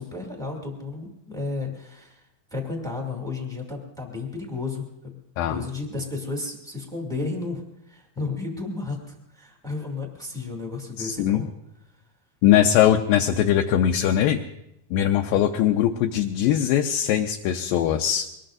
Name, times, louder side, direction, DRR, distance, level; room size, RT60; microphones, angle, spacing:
voice 1, 0.0-2.2 2.5-5.1 5.5-11.5, left 3 dB, ahead, 1 dB, 1.6 m, -33 dB
voice 2, 11.0-11.4 12.4-14.4 14.9-18.3, left 11 dB, 80° left, 3 dB, 2.3 m, -21 dB
24.0 x 19.5 x 2.6 m, 0.83 s
omnidirectional pair, 4.4 m